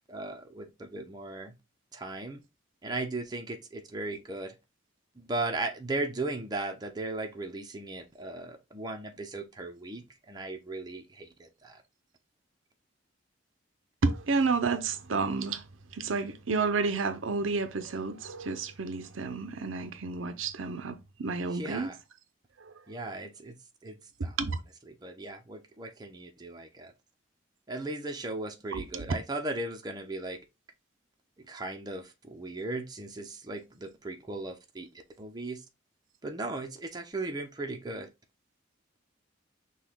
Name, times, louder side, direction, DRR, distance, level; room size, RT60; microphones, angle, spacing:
voice 1, 0.1-1.5 1.9-2.4 2.8-4.6 5.1-11.8 21.5-22.0 22.9-23.6 23.8-24.4 24.9-26.9 27.7-30.4 31.5-34.9 35.2-35.6 36.2-38.1, right 2 dB, 20° right, 0.7 m, -37 dB
voice 2, 14.0-15.6 15.9-21.9 24.2-24.6 28.7-29.0, right 4 dB, 80° right, 0.6 m, -30 dB
5.9 x 2.3 x 3.5 m
head